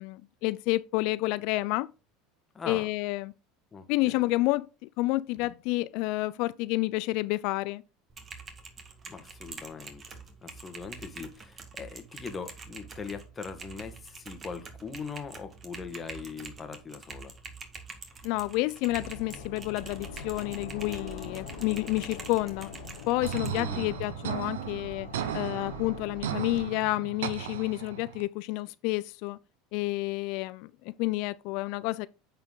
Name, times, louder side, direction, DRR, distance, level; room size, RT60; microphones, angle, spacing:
voice 1, 0.0-1.9 2.7-3.3 3.9-7.8 18.2-22.7 23.1-25.1 25.3-29.4 29.7-32.1, left 20 dB, 65° left, 0.4 m, -30 dB
voice 2, 2.5-2.9 3.7-4.3 9.1-10.0 10.4-17.3 23.5-23.9, left 5 dB, 25° left, 1.6 m, -41 dB
Typing, 8.1-23.6, right 4 dB, 30° right, 1.8 m, -46 dB
sound 1, 18.9-26.6, left 4 dB, 85° left, 1.6 m, -43 dB
sound 2, 23.2-28.2, right 9 dB, 85° right, 0.8 m, -36 dB
9.4 x 4.4 x 3.9 m
hypercardioid pair, 95°, 0 cm